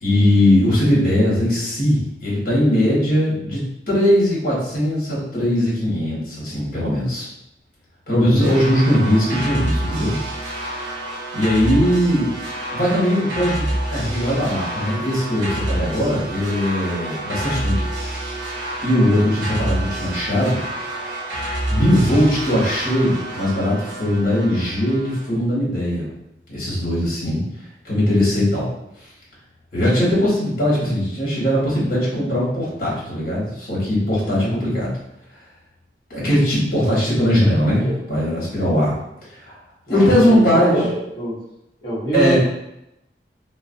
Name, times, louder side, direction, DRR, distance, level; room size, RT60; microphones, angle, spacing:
voice 1, 0.0-3.6 3.9-7.3 8.1-10.2 11.3-12.3 12.7-17.9 18.8-20.6 21.7-26.1 26.5-27.4 27.8-28.7 29.7-34.9 36.1-39.0 39.3-39.5 39.9-40.9 42.1-42.4, equal, 50° left, -7 dB, 1.1 m, -19 dB
sound 1, 8.4-25.2, right 1 dB, 85° right, 0.6 m, -28 dB
voice 2, 39.9-41.4 41.8-42.4, equal, 30° left, -11 dB, 0.9 m, -24 dB
2.4 x 2.1 x 2.5 m, 0.85 s
head